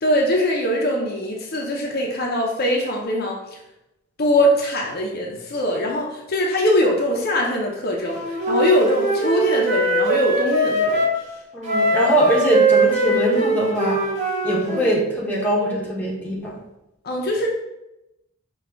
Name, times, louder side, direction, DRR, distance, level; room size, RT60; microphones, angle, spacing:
voice 1, 0.0-3.4 4.2-11.1 17.0-17.5, equal, 45° left, -1 dB, 0.5 m, -22 dB
Wind instrument woodwind instrument, 8.0-11.2 11.6-15.0, right 1 dB, 30° right, 0.7 m, -21 dB
voice 2, 11.5-14.0 14.4-16.6, equal, 10° left, -4 dB, 0.7 m, -22 dB
4.9 x 2.3 x 3.3 m, 0.90 s
head